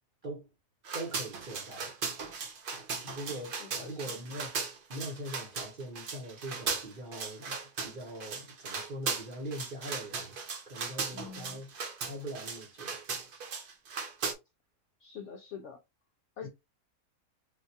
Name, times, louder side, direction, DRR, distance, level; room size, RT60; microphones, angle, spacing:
sound 1, 0.8-14.3, right 5 dB, 60° right, 0.5 m, -37 dB
voice 1, 0.9-1.9 3.0-4.6 4.9-7.5 7.8-10.4 10.7-11.7 12.0-13.0 16.4-16.5, right 1 dB, 40° right, 0.9 m, -42 dB
voice 2, 3.6-4.0 11.1-11.6 15.0-15.8 16.4-16.5, left 7 dB, 70° left, 0.7 m, -45 dB
3.9 x 2.2 x 2.7 m
omnidirectional pair, 1.7 m